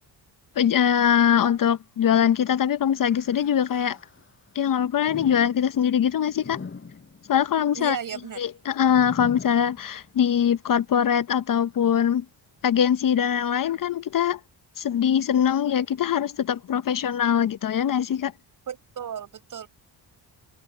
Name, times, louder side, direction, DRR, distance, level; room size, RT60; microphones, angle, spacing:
voice 1, 0.6-4.0 4.5-6.6 7.3-8.0 8.4-12.2 12.6-14.4 14.8-18.3, left 9 dB, 50° left, 0.8 m, -22 dB
sound 1, 3.0-4.5 5.0-10.3 10.8-10.9 11.7-11.8, left 5 dB, 30° left, 7.3 m, -42 dB
voice 2, 7.7-8.4 18.7-19.7, right 8 dB, 50° right, 6.8 m, -34 dB
cardioid pair, 135°, 43 cm